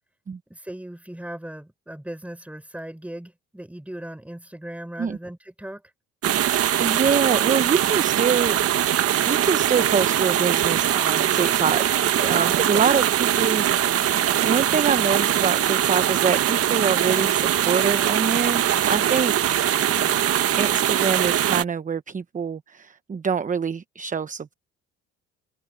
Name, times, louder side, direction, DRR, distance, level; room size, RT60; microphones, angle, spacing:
voice 1, 0.5-5.8 12.3-12.9 19.8-20.2, right 1 dB, 5° right, 4.9 m, -38 dB
sound 1, 6.2-21.6, right 11 dB, 50° right, 1.3 m, -22 dB
voice 2, 6.5-8.6 9.2-11.8 12.2-14.2 14.4-19.7 20.0-20.1 20.6-24.5, right 6 dB, 25° right, 1.0 m, -25 dB
supercardioid pair, 80°, 29 cm